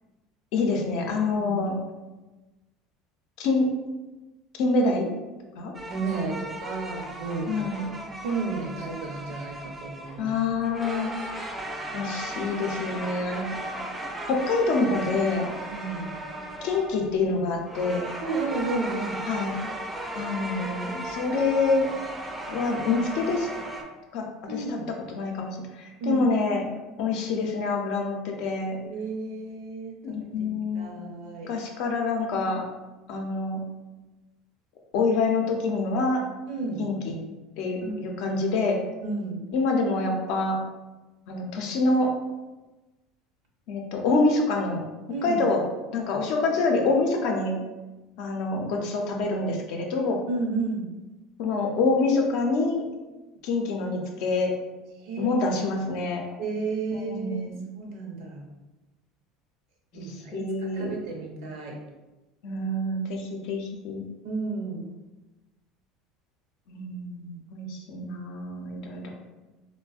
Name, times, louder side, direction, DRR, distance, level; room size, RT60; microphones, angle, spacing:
voice 1, 0.5-1.7 3.4-3.7 4.6-5.1 5.6-5.7 7.5-7.8 10.2-11.1 11.9-13.5 14.3-15.5 16.6-18.1 19.3-19.5 20.1-21.9 22.5-23.5 24.1-24.8 25.1-26.6 27.0-28.8 30.0-31.0 31.5-32.6 33.1-33.6 34.9-36.2 36.8-37.2 37.6-38.8 39.5-40.6 41.3-42.1 43.7-44.8 45.2-45.6 45.9-47.5 48.2-50.2 51.4-52.8 53.4-54.5 55.2-56.2 57.1-57.6 59.9-60.9 62.4-64.1 66.7-69.1, left 3 dB, 70° left, 1 dB, 0.5 m, -26 dB
sound 1, 5.7-23.8, right 1 dB, 15° right, 0.4 m, -36 dB
voice 2, 5.9-10.3 15.7-16.1 18.2-19.2 24.5-24.9 26.0-26.2 28.8-30.5 30.7-31.5 36.5-36.8 37.8-38.0 39.0-39.4 45.1-45.4 50.3-50.9 55.0-55.3 56.4-57.5 57.7-58.5 59.9-61.8 64.2-64.8, right 3 dB, 75° right, 1 dB, 0.6 m, -32 dB
3.3 x 2.1 x 2.3 m, 1.1 s
supercardioid pair, 110°, 0 cm